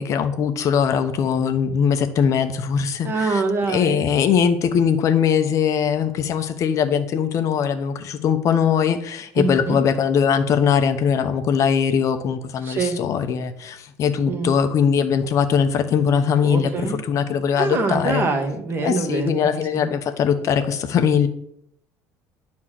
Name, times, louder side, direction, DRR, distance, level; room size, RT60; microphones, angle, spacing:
voice 1, 0.0-18.2 18.8-21.3, left 7 dB, 45° left, 8 dB, 0.9 m, -21 dB
voice 2, 3.0-4.0 9.4-9.8 12.6-13.0 14.3-14.5 16.4-17.0 17.6-19.9, right 3 dB, 30° right, 5 dB, 1.7 m, -24 dB
11.0 x 4.5 x 7.5 m, 0.72 s
cardioid pair, 140°, 7 cm